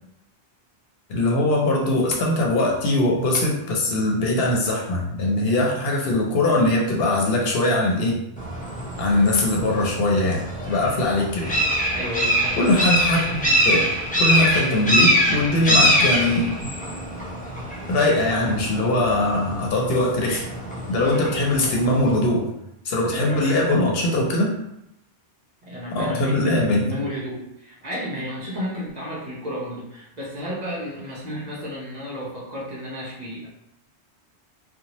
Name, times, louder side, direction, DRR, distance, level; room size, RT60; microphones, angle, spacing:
voice 1, 1.1-8.2 9.0-11.5 12.6-13.9 14.2-16.7 17.9-20.5 20.9-22.4 22.8-24.5 25.9-26.8, left 1 dB, 70° left, -2 dB, 0.8 m, -21 dB
sound 1, 8.4-22.2, equal, 10° left, 0.4 m, -24 dB
voice 2, 11.9-12.7 23.1-24.0 25.6-33.5, equal, 45° right, -6 dB, 0.8 m, -32 dB
2.7 x 2.1 x 2.9 m, 0.83 s
omnidirectional pair, 1.1 m